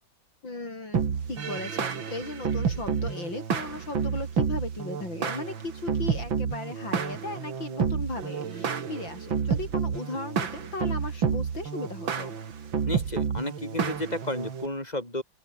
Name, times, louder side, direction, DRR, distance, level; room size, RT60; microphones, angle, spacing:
voice 1, 0.4-12.4, left 2 dB, 70° left, 7.0 m, -37 dB
sound 1, 0.9-14.7, right 6 dB, 80° right, 3.0 m, -30 dB
voice 2, 12.9-15.2, left 1 dB, 20° left, 7.8 m, -32 dB
open air
omnidirectional pair, 2.1 m